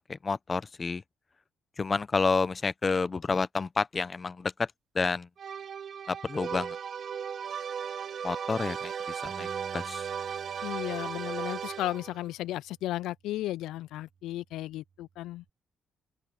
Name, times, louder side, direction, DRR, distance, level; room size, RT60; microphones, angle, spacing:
voice 1, 0.1-1.0 1.8-4.7 4.9-5.3 6.1-6.8 8.2-9.5 9.7-10.0, left 4 dB, 30° left, 0.8 m, -29 dB
sound 1, 5.4-12.2, right 7 dB, 55° right, 2.2 m, -36 dB
Bass guitar, 9.3-15.5, right 6 dB, 40° right, 2.5 m, -54 dB
voice 2, 10.6-15.4, left 15 dB, 85° left, 0.4 m, -34 dB
open air
cardioid pair, 90°, 0 cm